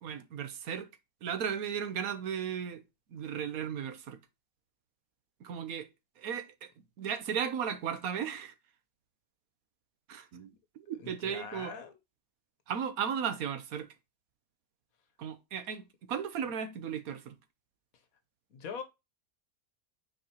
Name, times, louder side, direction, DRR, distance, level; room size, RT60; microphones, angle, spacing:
voice 1, 0.0-0.9 1.2-2.8 3.1-4.2 5.4-5.9 6.2-6.7 7.0-8.5 10.1-10.5 10.7-11.7 12.7-13.9 15.2-17.4, right 8 dB, 75° right, 1.3 m, -35 dB
voice 2, 11.0-12.0 18.5-18.8, left 6 dB, 75° left, 1.4 m, -42 dB
8.9 x 4.7 x 2.9 m
omnidirectional pair, 1.5 m